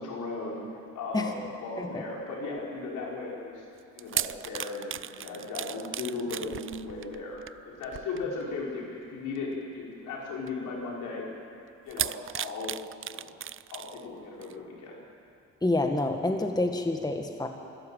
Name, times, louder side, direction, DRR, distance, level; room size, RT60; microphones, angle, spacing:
voice 1, 0.0-3.7 3.9-11.3 11.8-12.7 13.1-13.2 13.7-15.0, left 3 dB, 85° left, -3 dB, 5.3 m, -36 dB
sound 1, 3.8-8.6 9.4-9.6 10.5-10.6 11.9-14.1 14.4-14.5, right 10 dB, 45° right, 0.5 m, -36 dB
voice 2, 15.6-17.5, left 2 dB, 15° left, 4 dB, 1.7 m, -28 dB
26.0 x 13.0 x 8.9 m, 2.6 s
cardioid pair, 90°, 30 cm